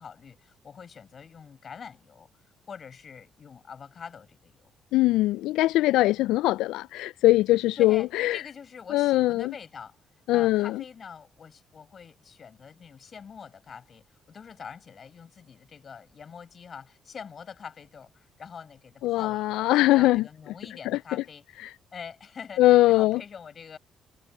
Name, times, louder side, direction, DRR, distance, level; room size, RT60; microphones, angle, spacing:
voice 1, 0.0-2.3 2.7-4.7 7.8-10.0 10.3-19.7 19.9-21.4 21.9-23.8, left 6 dB, 50° left, 7.5 m, -44 dB
voice 2, 4.9-8.4 8.9-9.5 10.3-10.8 19.0-20.2 20.9-21.2 21.6-21.7 22.6-23.2, left 17 dB, 80° left, 0.3 m, -22 dB
hypercardioid pair, 50°, 0 cm